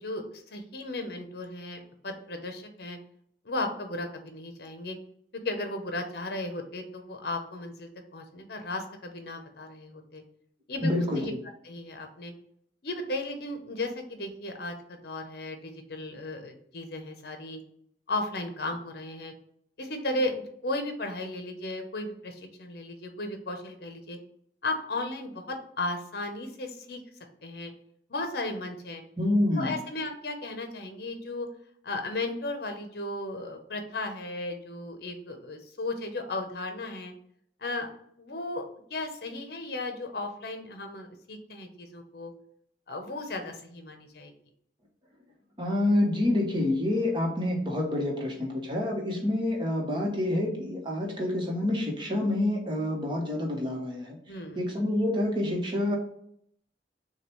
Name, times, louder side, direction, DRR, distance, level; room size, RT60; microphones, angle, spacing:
voice 1, 0.0-3.0 3.4-5.0 5.4-10.2 10.7-11.3 11.6-12.3 12.8-17.6 18.1-19.3 19.8-24.2 24.6-27.0 27.4-27.7 28.1-29.0 29.6-31.5 31.8-37.1 37.6-37.9 38.2-38.6 38.9-42.3 42.9-44.3 54.3-54.6, left 2 dB, 60° left, 6 dB, 0.8 m, -35 dB
voice 2, 10.8-11.4 29.2-29.8 45.6-54.2 54.5-56.0, left 1 dB, 25° right, -1 dB, 1.1 m, -27 dB
6.5 x 2.3 x 3.1 m, 0.68 s
head